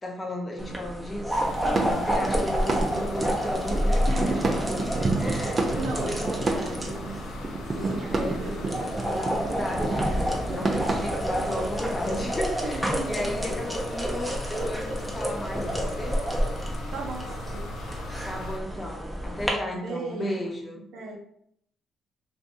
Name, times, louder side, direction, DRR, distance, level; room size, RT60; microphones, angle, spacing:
voice 1, 0.0-6.8 8.0-8.4 8.9-16.2 18.2-20.8, left 1 dB, 30° left, 0 dB, 0.8 m, -35 dB
sound 1, 0.6-19.5, equal, 5° right, 0.7 m, -29 dB
sound 2, 1.3-18.6, left 3 dB, 85° left, 0.4 m, -41 dB
sound 3, 1.4-11.0, right 3 dB, 40° right, 0.5 m, -30 dB
voice 2, 4.1-4.4 5.8-7.2 7.7-8.9 12.7-13.4 16.9-17.7 19.7-21.2, right 3 dB, 75° right, 2 dB, 0.6 m, -36 dB
2.6 x 2.6 x 3.5 m, 0.70 s
cardioid pair, 90°, 0 cm